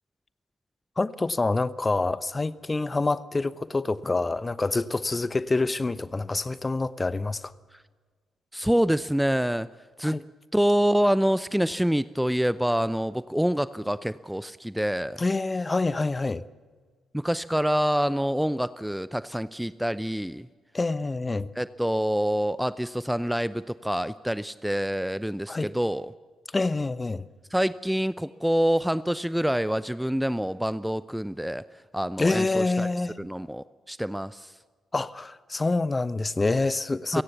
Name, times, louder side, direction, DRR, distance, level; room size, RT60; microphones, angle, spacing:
voice 1, 1.0-7.5 10.0-10.2 15.2-16.4 20.7-21.5 25.5-25.7 26.5-27.3 32.2-33.2 34.9-37.2, left 3 dB, 25° left, 0.9 m, -26 dB
voice 2, 8.5-9.7 10.0-10.2 10.5-15.2 17.1-20.5 21.6-26.1 27.5-31.6 31.9-32.9 33.2-34.5 37.1-37.2, equal, 5° right, 0.7 m, -26 dB
29.5 x 17.5 x 7.1 m
figure-of-eight pair, 40°, 0 cm